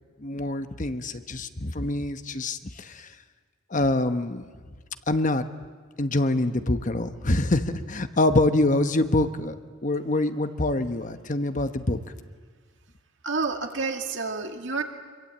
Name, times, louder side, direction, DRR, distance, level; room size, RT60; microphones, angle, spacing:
voice 1, 0.2-3.1 3.7-4.5 5.1-5.4 6.0-9.5 9.8-12.0, left 2 dB, 40° left, 9 dB, 1.1 m, -25 dB
voice 2, 13.2-14.8, right 4 dB, 60° right, 4 dB, 2.3 m, -29 dB
26.0 x 23.0 x 8.6 m, 1.5 s
head